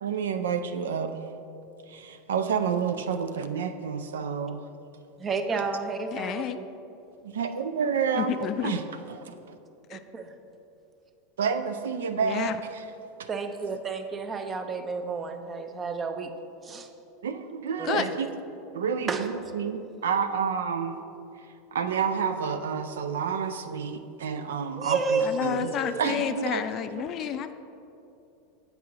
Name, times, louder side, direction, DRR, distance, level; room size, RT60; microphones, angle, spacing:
voice 1, 0.0-1.2 1.9-4.6 7.2-9.6 11.4-12.8 13.2-13.3 17.2-18.3 18.7-21.0 21.7-25.7 26.0-26.6 26.9-27.3, right 6 dB, 75° right, 8 dB, 0.4 m, -29 dB
voice 2, 5.2-6.6 9.9-10.3 13.3-16.3 16.6-16.9 17.8-18.1 19.1-19.3 24.7-26.1, right 4 dB, 25° right, 7 dB, 0.6 m, -31 dB
voice 3, 6.1-6.6 8.1-8.8 9.9-10.0 12.2-12.5 17.8-18.1 25.2-27.5, left 10 dB, 45° left, 10 dB, 0.3 m, -30 dB
8.0 x 4.7 x 3.8 m, 2.7 s
hypercardioid pair, 90°, 0 cm